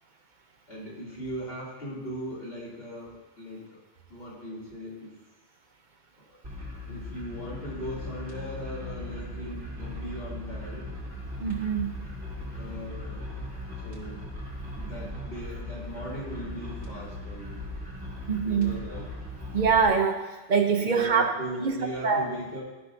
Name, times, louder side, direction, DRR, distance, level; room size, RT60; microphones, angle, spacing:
voice 1, 0.7-3.8 4.1-5.2 6.1-6.4 6.9-10.9 12.5-13.2 13.8-14.3 14.7-17.6 18.4-19.0 20.7-22.6, right 1 dB, 70° left, -8 dB, 3.1 m, -39 dB
sound 1, 6.4-19.9, left 1 dB, 85° right, 2.1 m, -38 dB
voice 2, 11.4-12.0 18.3-18.8 19.5-21.3 21.6-21.7 22.0-22.3, right 5 dB, 55° right, 4 dB, 0.8 m, -24 dB
14.5 x 5.7 x 2.6 m, 1.1 s
omnidirectional pair, 1.0 m